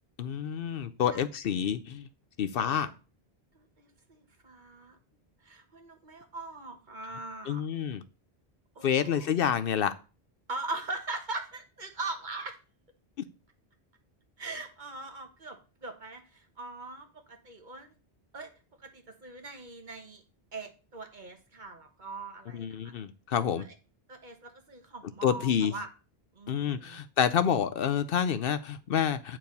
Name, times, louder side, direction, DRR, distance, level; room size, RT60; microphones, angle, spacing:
voice 1, 0.2-2.1 2.4-2.9 7.5-8.0 8.8-9.9 22.5-23.7 25.2-25.7 26.5-29.4, left 8 dB, 65° left, 12 dB, 0.8 m, -28 dB
voice 2, 2.6-2.9 3.5-4.9 5.4-7.6 8.7-9.3 10.5-12.6 14.4-17.9 18.3-18.5 18.9-20.2 20.5-22.9 24.1-25.9 26.3-27.0, right 3 dB, 50° right, 5 dB, 1.4 m, -41 dB
8.7 x 4.7 x 5.2 m, 0.33 s
omnidirectional pair, 1.1 m